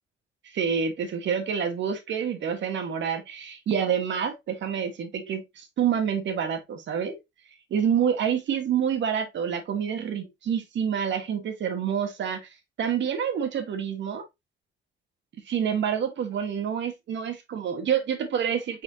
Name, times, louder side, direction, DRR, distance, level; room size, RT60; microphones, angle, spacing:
voice 1, 0.4-7.2 7.7-12.5 12.8-14.2 15.4-18.8, right 8 dB, 65° right, 1.3 m, -27 dB
4.5 x 4.1 x 2.7 m
cardioid pair, 90°, 20 cm